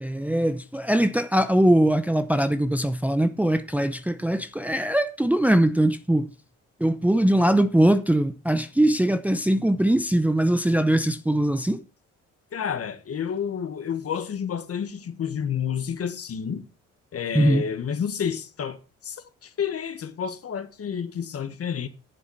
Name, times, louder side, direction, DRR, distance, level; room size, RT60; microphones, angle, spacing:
voice 1, 0.0-6.3 6.8-11.8 17.3-17.7, right 1 dB, 5° right, 0.6 m, -21 dB
voice 2, 12.5-16.7 17.1-18.8 19.0-21.9, left 7 dB, 50° left, 1.6 m, -30 dB
9.9 x 7.2 x 5.6 m
cardioid pair, 90°, 30 cm